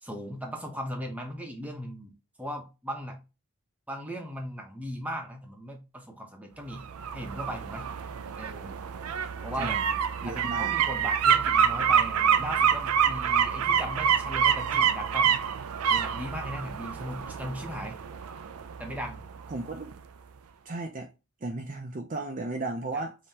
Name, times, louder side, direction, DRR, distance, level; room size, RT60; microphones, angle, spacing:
voice 1, 0.0-3.2 3.9-6.8 7.1-7.9 8.4-8.8 9.4-9.8 10.3-15.4 15.9-18.0 18.8-19.2, equal, 5° right, 0.8 m, -38 dB
sound 1, 6.7-19.6 19.9-20.0, right 8 dB, 90° right, 0.4 m, -27 dB
voice 2, 9.6-9.9 10.2-10.7 19.5-19.9 20.7-21.1 21.4-23.2, right 2 dB, 35° right, 0.5 m, -34 dB
5.3 x 2.9 x 2.8 m
head